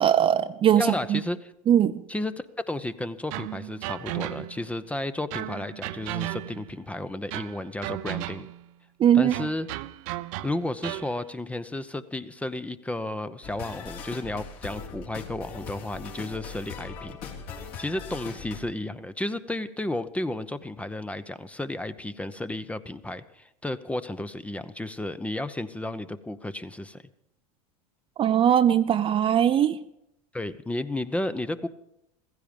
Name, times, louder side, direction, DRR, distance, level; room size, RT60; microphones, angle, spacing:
voice 1, 0.0-1.2 1.7-2.0 9.0-9.3 28.2-29.8, right 10 dB, 30° right, 0.5 m, -20 dB
voice 2, 0.7-1.5 2.1-8.5 9.1-9.7 10.4-17.2 17.8-27.0 30.3-31.7, left 1 dB, 5° left, 0.7 m, -33 dB
sound 1, 3.3-4.7 5.3-6.8 7.3-8.7 9.3-11.2, right 16 dB, 60° right, 0.7 m, -35 dB
sound 2, 13.4-18.6, left 5 dB, 55° left, 3.5 m, -40 dB
15.5 x 15.0 x 5.2 m
hypercardioid pair, 100°, 19 cm